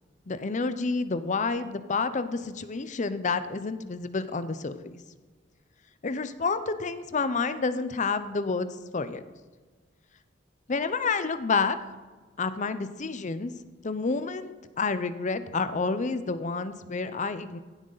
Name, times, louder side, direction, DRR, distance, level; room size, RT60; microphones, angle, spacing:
voice 1, 0.3-4.9 6.0-8.7 8.9-9.2 10.7-11.8 12.4-13.5 13.8-14.5 14.8-17.6, left 4 dB, 40° left, 12 dB, 0.6 m, -29 dB
16.0 x 7.9 x 4.0 m, 1.4 s
head